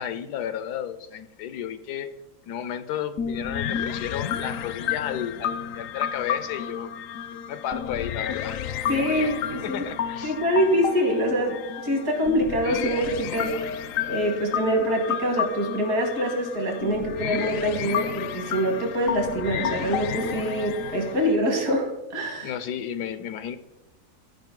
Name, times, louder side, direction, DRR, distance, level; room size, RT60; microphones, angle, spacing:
voice 1, 0.0-2.1 2.4-6.9 7.3-9.3 9.6-10.4 22.4-23.6, left 9 dB, 90° left, 12 dB, 1.2 m, -33 dB
sound 1, 3.2-21.4, left 8 dB, 70° left, 0.8 m, -31 dB
voice 2, 8.9-9.8 10.2-13.6 14.1-22.5, equal, 65° right, 3 dB, 2.2 m, -25 dB
15.0 x 5.0 x 3.8 m, 0.96 s
omnidirectional pair, 1.7 m